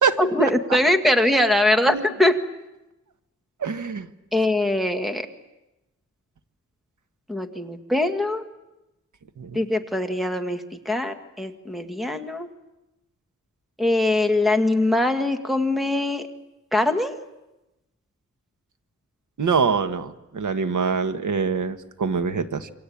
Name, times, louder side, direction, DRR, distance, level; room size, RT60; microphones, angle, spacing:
voice 1, 0.2-2.4 4.3-5.3 7.3-8.4 9.5-12.5 13.8-16.3 16.7-17.2, left 1 dB, ahead, 6 dB, 1.7 m, -22 dB
voice 2, 3.6-4.1 9.4-9.6 19.4-22.7, right 5 dB, 90° right, 9 dB, 1.5 m, -24 dB
27.5 x 25.0 x 8.6 m, 0.97 s
wide cardioid pair, 145°, 29 cm